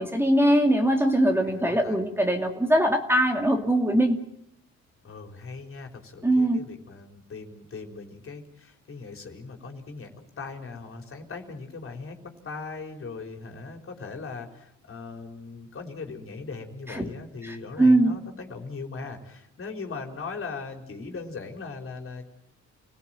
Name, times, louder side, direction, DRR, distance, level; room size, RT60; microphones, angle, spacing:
voice 1, 0.0-4.2 6.2-6.6 16.9-17.1 17.4-18.1, right 1 dB, 10° right, 3 dB, 2.7 m, -22 dB
voice 2, 1.5-2.0 5.0-22.2, left 4 dB, 45° left, 3 dB, 4.6 m, -39 dB
29.0 x 17.5 x 9.2 m, 0.79 s
cardioid pair, 90°, 30 cm